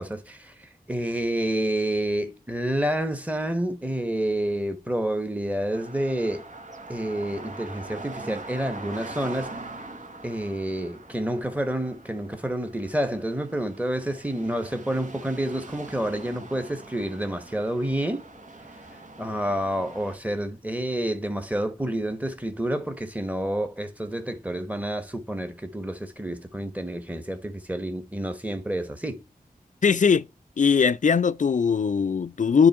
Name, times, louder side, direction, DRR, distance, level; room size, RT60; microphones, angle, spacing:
voice 1, 0.0-6.4 6.9-9.6 10.2-18.2 19.2-29.2, right 1 dB, 10° right, 1.4 m, -29 dB
sound 1, 5.7-20.2, right 2 dB, 55° right, 1.4 m, -43 dB
voice 2, 29.8-30.3 30.6-32.7, left 6 dB, 55° left, 0.5 m, -20 dB
10.5 x 3.4 x 4.6 m
wide cardioid pair, 70°, 15 cm